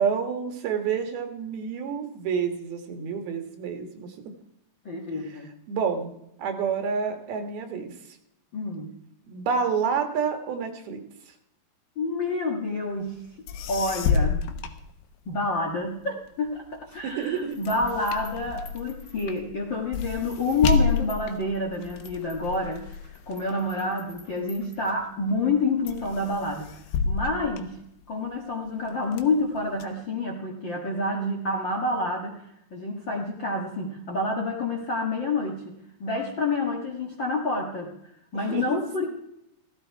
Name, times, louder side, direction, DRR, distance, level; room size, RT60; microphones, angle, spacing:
voice 1, 0.0-4.1 5.7-6.1 6.4-7.9 9.3-11.0 17.0-17.7 38.5-38.8, right 6 dB, 75° right, 5 dB, 3.5 m, -28 dB
voice 2, 4.8-5.5 8.5-8.9 11.9-13.2 13.7-14.6 15.2-26.8 27.0-27.8 28.1-32.4 32.7-37.9 38.3-39.1, left 2 dB, 45° left, 0 dB, 1.5 m, -28 dB
sound 1, 13.2-13.3 13.5-15.6 16.0-24.7 25.2-25.6 25.9-28.4 28.8-29.8, left 5 dB, 85° left, 3.0 m, -30 dB
sound 2, 16.9-19.7 20.2-25.3, left 4 dB, 20° left, 2.3 m, -52 dB
16.5 x 14.0 x 4.6 m, 0.80 s
omnidirectional pair, 4.4 m